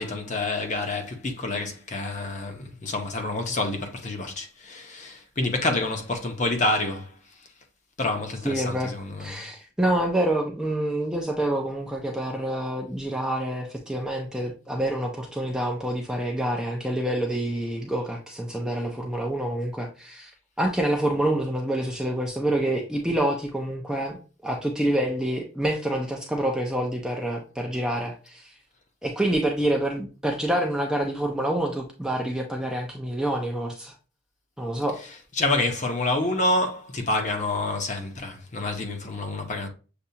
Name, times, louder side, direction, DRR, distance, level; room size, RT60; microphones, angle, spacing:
voice 1, 0.0-7.1 8.0-9.5 35.4-39.7, left 2 dB, 35° left, 0.7 m, -28 dB
voice 2, 8.4-8.9 9.2-20.3 20.6-28.5 29.0-33.9 34.6-35.0, right 1 dB, 5° right, 0.4 m, -27 dB
6.7 x 2.4 x 2.7 m
head